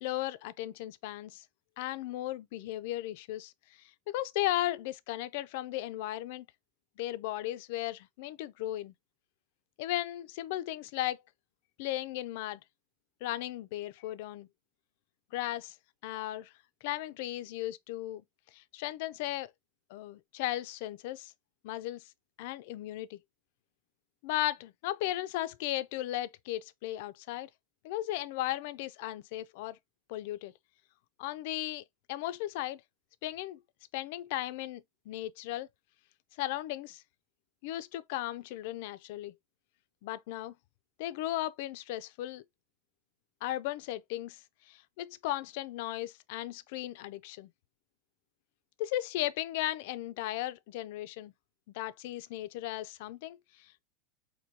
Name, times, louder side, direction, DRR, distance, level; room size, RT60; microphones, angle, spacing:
voice 1, 0.0-1.4 1.8-3.5 4.1-6.5 7.0-8.9 9.8-11.2 11.8-12.6 13.2-14.5 15.3-15.8 16.0-16.5 16.8-18.2 18.5-19.5 19.9-21.3 21.6-22.0 22.4-23.2 24.2-27.5 27.8-29.8 30.1-30.5 31.2-32.8 33.2-33.6 33.9-35.7 36.4-37.0 37.6-39.3 40.0-40.5 41.0-42.4 43.4-47.5 48.8-51.3 51.7-53.8, left 15 dB, 65° left, 0.4 m, -36 dB
4.5 x 2.7 x 2.7 m
supercardioid pair, 135°, 0 cm